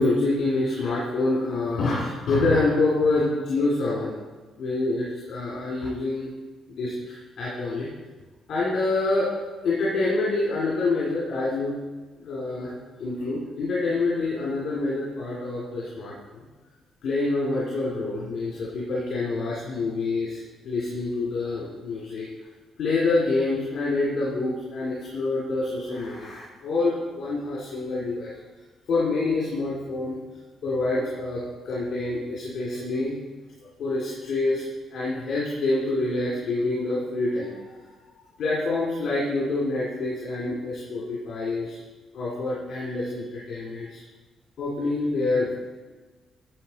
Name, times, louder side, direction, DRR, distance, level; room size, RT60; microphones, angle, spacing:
voice 1, 0.0-4.1 4.6-6.3 6.8-7.9 8.5-9.3 9.6-11.8 12.2-16.4 17.0-22.3 22.8-28.3 28.9-30.2 30.6-33.1 33.8-34.6 34.9-37.6 38.4-41.8 42.1-44.0 44.6-45.5, left 2 dB, 65° left, -6 dB, 2.4 m, -26 dB
10.5 x 7.2 x 4.1 m, 1.3 s
cardioid pair, 90°, 0 cm